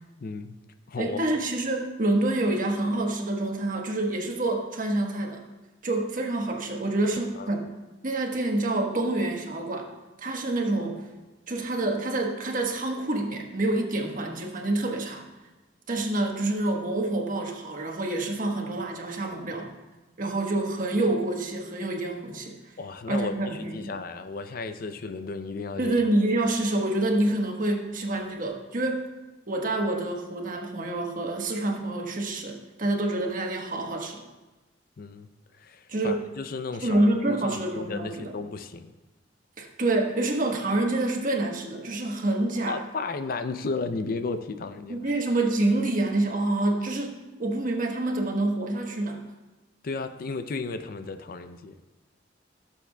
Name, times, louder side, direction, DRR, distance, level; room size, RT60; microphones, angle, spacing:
voice 1, 0.2-0.6 0.9-1.3 7.3-7.5 22.8-25.9 35.0-35.3 35.6-38.9 42.6-45.0 49.8-51.7, left 4 dB, 55° left, 9 dB, 0.5 m, -34 dB
voice 2, 1.0-5.4 5.8-7.7 8.0-9.9 10.2-11.0 11.5-15.2 15.9-19.7 20.2-22.5 23.1-23.9 25.8-29.1 29.5-34.2 35.9-36.2 36.8-38.3 39.6-42.8 44.9-49.3, right 2 dB, 50° right, 2 dB, 1.2 m, -27 dB
16.5 x 7.2 x 2.3 m, 1.1 s
head